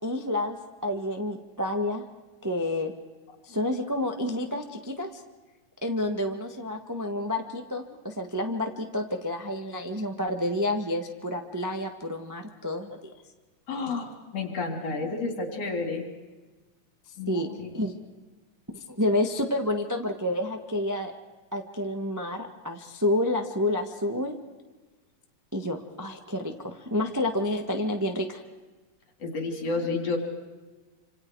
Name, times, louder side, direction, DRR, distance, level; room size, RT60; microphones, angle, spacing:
voice 1, 0.0-0.6 0.8-2.0 2.4-2.9 3.4-5.2 5.8-13.0 17.3-17.5 17.7-18.0 18.7-21.1 21.5-24.4 25.5-28.4, left 1 dB, 15° right, 4 dB, 0.7 m, -29 dB
voice 2, 13.7-16.1 17.2-17.7 29.2-30.2, left 3 dB, 55° left, 3 dB, 4.4 m, -31 dB
27.0 x 27.0 x 4.8 m, 1.2 s
omnidirectional pair, 3.4 m